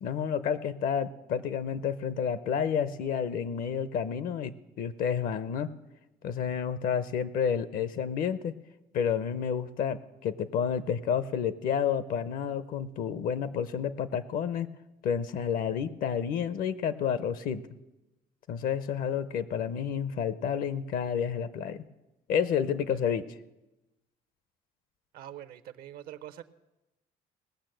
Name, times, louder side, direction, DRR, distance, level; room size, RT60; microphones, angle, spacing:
voice 1, 0.0-5.7 6.2-8.5 8.9-14.7 15.0-17.6 18.5-21.8 22.3-23.3, left 7 dB, 65° left, 15 dB, 0.7 m, -30 dB
voice 2, 25.1-26.4, right 11 dB, 70° right, 13 dB, 0.7 m, -45 dB
18.5 x 6.5 x 7.7 m, 1.0 s
cardioid pair, 130°, 16 cm